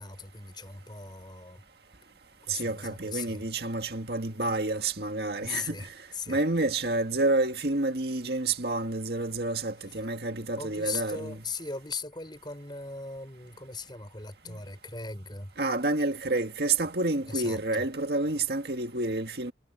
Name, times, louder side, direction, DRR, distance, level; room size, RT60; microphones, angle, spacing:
voice 1, 0.0-1.6 2.5-3.4 5.3-6.4 10.6-15.5 17.3-17.8, left 4 dB, 25° left, 6.3 m, -39 dB
voice 2, 2.5-5.9 6.3-11.4 14.5-14.6 15.6-19.5, right 2 dB, 65° right, 1.9 m, -29 dB
head